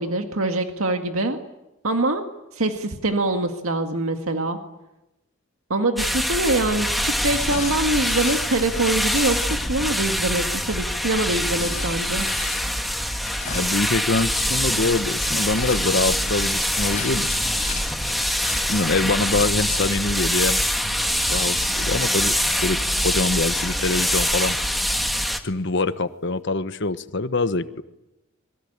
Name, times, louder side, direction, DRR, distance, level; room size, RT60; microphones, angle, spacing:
voice 1, 0.0-1.4 1.8-2.2 2.5-4.6 5.7-12.3, right 2 dB, 80° right, 5 dB, 1.9 m, -24 dB
sound 1, 6.0-25.4, equal, ahead, 1.6 m, -24 dB
sound 2, 7.3-9.6 11.6-13.9 15.5-19.2 21.0-24.8, left 7 dB, 35° left, 4.3 m, -38 dB
voice 2, 13.5-17.4 18.7-20.6 21.3-22.3 22.6-22.8 23.0-24.6 25.4-27.8, left 3 dB, 55° left, 12 dB, 1.2 m, -24 dB
25.5 x 22.5 x 8.9 m, 0.94 s
head